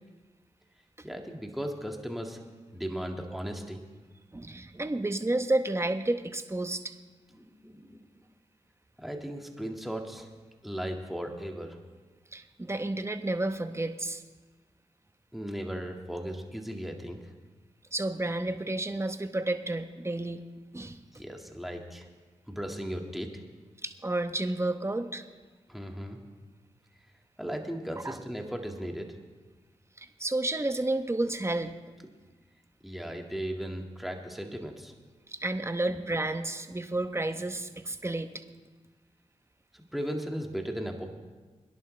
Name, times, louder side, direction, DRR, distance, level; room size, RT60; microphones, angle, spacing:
voice 1, 1.0-2.4 2.7-3.8 7.4-8.0 9.0-10.3 10.6-11.8 15.3-17.2 21.1-22.1 22.5-23.4 25.7-26.2 27.4-29.2 32.8-34.9 39.7-41.1, equal, ahead, 2 dB, 1.9 m, -36 dB
voice 2, 4.3-6.9 12.3-14.2 17.9-20.4 20.7-21.0 23.8-25.2 28.0-28.2 30.0-31.7 35.3-38.4, right 2 dB, 20° right, 8 dB, 0.9 m, -31 dB
21.5 x 11.0 x 3.3 m, 1.3 s
cardioid pair, 50°, 13 cm